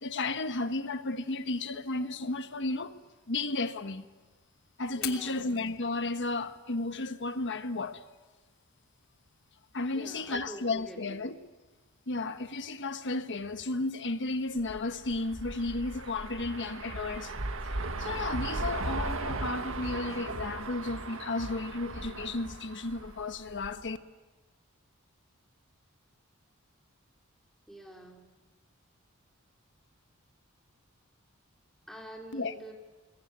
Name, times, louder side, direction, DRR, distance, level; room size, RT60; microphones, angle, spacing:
voice 1, 0.0-3.0 3.3-4.1 4.8-8.0 9.7-11.3 12.1-17.3 18.0-24.0 32.3-32.5, left 2 dB, 60° left, 1.5 m, -33 dB
Fire, 4.9-12.9, left 11 dB, 80° left, 3.2 m, -49 dB
voice 2, 4.9-5.5 9.9-11.2 27.7-28.2 31.9-32.7, right 1 dB, ahead, 4.5 m, -46 dB
sound 1, 14.6-23.8, right 2 dB, 65° right, 1.8 m, -37 dB
28.5 x 21.5 x 9.5 m
head